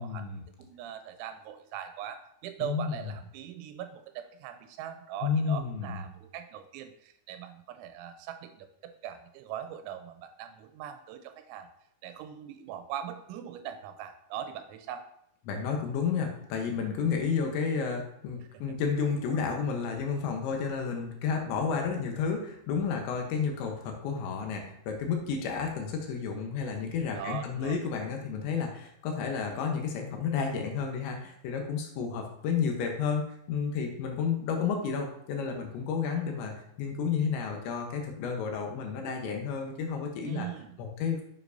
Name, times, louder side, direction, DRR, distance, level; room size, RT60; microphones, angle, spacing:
voice 1, 0.0-0.4 2.6-3.1 5.2-6.0 15.5-40.5 40.8-41.2, left 6 dB, 75° left, 2 dB, 3.1 m, -31 dB
voice 2, 0.6-11.7 12.0-15.1 27.2-27.8 40.2-40.8, right 10 dB, 85° right, 8 dB, 2.8 m, -41 dB
9.1 x 7.1 x 2.6 m, 0.75 s
omnidirectional pair, 5.6 m